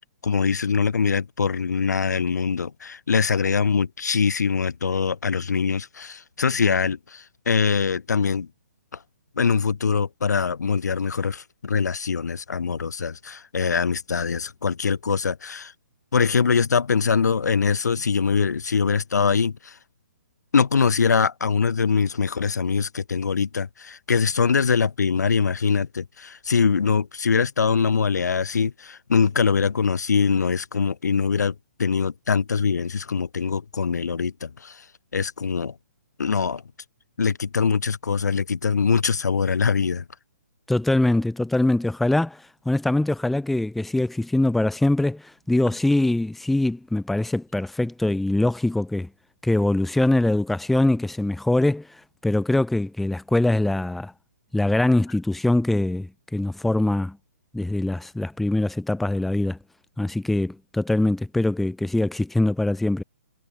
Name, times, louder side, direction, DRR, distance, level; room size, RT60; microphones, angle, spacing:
voice 1, 0.2-8.5 9.4-15.7 16.1-19.8 20.5-34.8 35.1-35.7 36.2-36.6 37.2-40.0, left 5 dB, 90° left, 4.3 m, -23 dB
voice 2, 40.7-49.1 49.4-51.9 52.2-54.1 54.5-57.2 57.5-59.6 60.0-63.0, left 2 dB, ahead, 1.2 m, -23 dB
hypercardioid pair, 170°, 9 cm